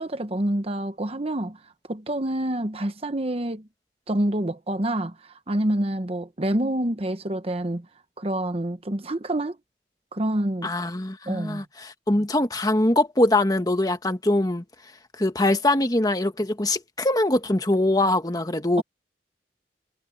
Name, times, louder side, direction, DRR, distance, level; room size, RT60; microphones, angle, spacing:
voice 1, 0.0-1.6 1.9-3.7 4.1-7.9 8.2-9.6 10.1-10.7 11.3-11.6, right 1 dB, 35° right, 1.0 m, -27 dB
voice 2, 10.6-14.6 15.2-18.8, left 1 dB, 20° left, 1.6 m, -23 dB
head